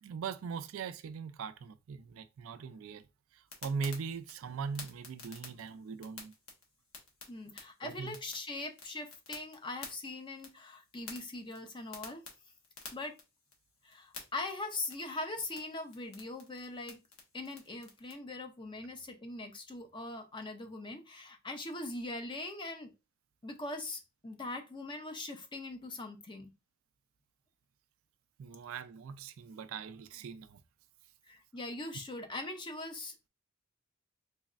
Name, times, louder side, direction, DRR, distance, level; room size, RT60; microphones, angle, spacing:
voice 1, 0.0-3.1 3.3-6.3 7.5-7.6 7.8-8.2 28.4-30.6, right 5 dB, 75° right, 0.4 m, -40 dB
sound 1, 3.5-18.1, left 3 dB, 80° left, 1.2 m, -52 dB
voice 2, 7.3-12.2 12.9-13.2 13.8-17.0 17.3-22.9 23.4-26.5 31.3-33.3, left 2 dB, 25° left, 0.6 m, -41 dB
4.0 x 3.1 x 2.4 m
head